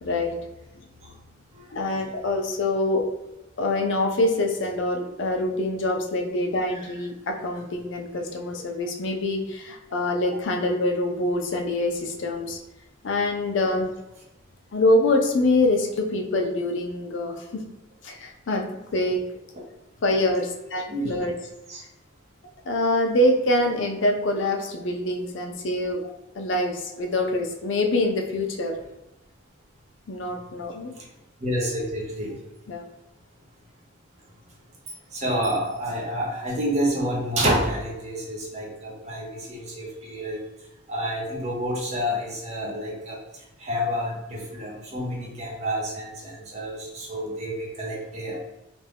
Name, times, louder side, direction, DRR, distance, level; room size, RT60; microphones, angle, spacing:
voice 1, 0.0-0.3 1.7-3.1 3.6-12.6 13.0-13.9 14.7-17.6 18.0-18.6 18.9-19.2 20.0-21.3 22.7-26.0 26.4-28.8 30.1-30.9 32.7-32.8, left 1 dB, 70° left, 3 dB, 0.5 m, -25 dB
voice 2, 20.9-21.2 21.7-21.8 31.0-31.1 31.4-32.4 35.1-40.4 40.9-43.2 43.6-48.4, equal, 35° right, -3 dB, 0.7 m, -29 dB
2.5 x 2.2 x 3.3 m, 0.96 s
head